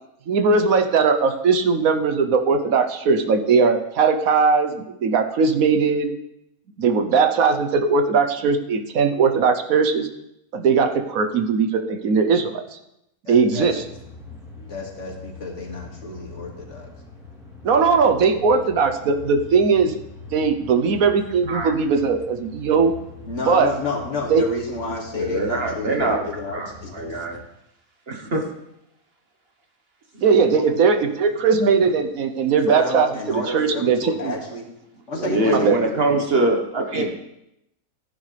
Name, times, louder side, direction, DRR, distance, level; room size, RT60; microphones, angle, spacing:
voice 1, 0.3-6.1 6.8-10.1 10.5-12.8 13.3-13.8 17.6-19.9 20.3-22.9 23.5-23.7 24.3-24.4 30.2-34.4 35.5-35.8, right 5 dB, 75° right, 7 dB, 1.2 m, -19 dB
voice 2, 13.2-13.7 14.7-16.9 23.3-27.2 30.6-30.7 32.7-34.7 35.1-35.8, left 3 dB, 55° left, -1 dB, 2.4 m, -30 dB
sound 1, 13.6-27.4, left 3 dB, ahead, 3.3 m, -42 dB
voice 3, 25.1-26.2 26.5-27.4 28.1-28.5 30.1-30.2 35.1-37.1, right 2 dB, 45° right, 2 dB, 1.3 m, -23 dB
15.0 x 10.5 x 3.3 m, 0.83 s
omnidirectional pair, 1.5 m